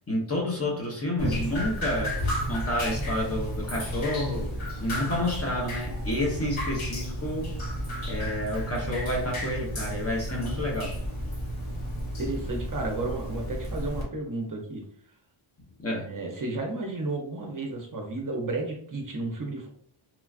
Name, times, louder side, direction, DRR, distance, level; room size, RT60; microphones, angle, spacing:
voice 1, 0.1-2.2 2.5-7.6 8.0-11.0 15.8-16.1, left 1 dB, 30° left, -2 dB, 0.8 m, -30 dB
Drip, 1.2-14.0, equal, 70° left, 1.1 m, -32 dB
voice 2, 12.2-14.8 16.0-19.7, right 2 dB, 40° right, 1 dB, 0.6 m, -32 dB
3.1 x 2.2 x 2.4 m, 0.63 s
wide cardioid pair, 90°, 50 cm